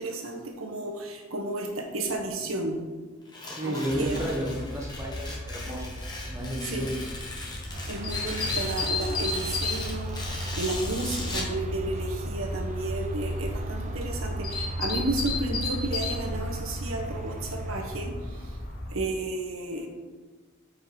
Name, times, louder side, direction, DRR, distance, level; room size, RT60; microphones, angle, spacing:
voice 1, 0.0-2.8 3.4-4.2 6.6-6.9 7.9-18.6 18.9-19.9, right 2 dB, 80° right, 2 dB, 1.2 m, -33 dB
Tearing, 3.3-11.6, left 2 dB, 20° left, 1.1 m, -39 dB
voice 2, 3.5-5.9 6.2-6.9 8.4-8.5, right 1 dB, 15° right, -2 dB, 1.0 m, -32 dB
sound 1, 3.9-19.0, left 3 dB, 45° left, 0.9 m, -35 dB
sound 2, 7.7-18.1, right 1 dB, 35° right, 0.5 m, -35 dB
6.0 x 5.1 x 4.7 m, 1.3 s
head